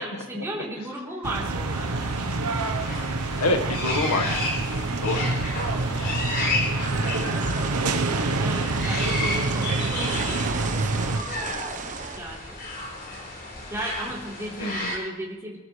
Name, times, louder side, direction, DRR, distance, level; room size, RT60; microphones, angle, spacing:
voice 1, 0.0-2.1 5.2-5.4 7.3-7.7 8.4-11.9 12.2-12.6 13.7-15.6, right 1 dB, 15° right, -5 dB, 3.7 m, -36 dB
sound 1, 1.2-11.2, right 3 dB, 90° right, 1.0 m, -27 dB
sound 2, 1.7-15.0, left 2 dB, 45° left, 4.4 m, -33 dB
voice 2, 3.4-5.3 5.9-6.3 7.0-8.4 14.6-15.0, left 2 dB, 85° left, 4 dB, 1.6 m, -30 dB
sound 3, 6.8-12.2, right 5 dB, 35° right, 1.1 m, -36 dB
24.0 x 13.0 x 3.3 m, 1.3 s
head